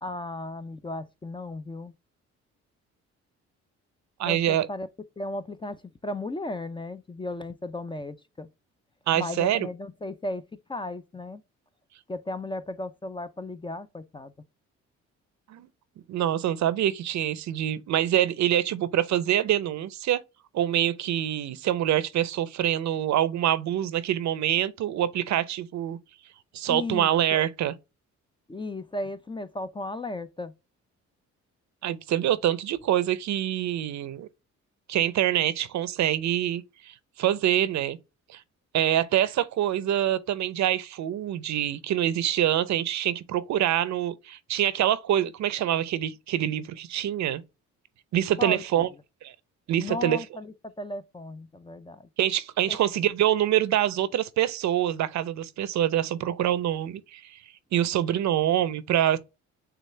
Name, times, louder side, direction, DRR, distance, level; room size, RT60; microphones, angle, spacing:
voice 1, 0.0-1.9 4.3-4.9 5.2-8.5 9.1-11.4 12.1-14.3 26.7-27.4 28.5-30.5 48.4-48.6 49.8-52.1 52.7-52.8, left 2 dB, 15° left, 0.4 m, -35 dB
voice 2, 4.2-4.7 9.1-9.7 15.5-15.7 16.1-20.2 20.5-26.0 26.5-27.7 31.8-34.3 34.9-38.0 38.3-38.4 38.7-47.4 48.1-48.9 49.2-49.3 49.7-50.2 52.2-57.4 57.7-59.2, right 11 dB, 65° right, 0.6 m, -25 dB
6.5 x 2.4 x 3.2 m
cardioid pair, 90°, 30 cm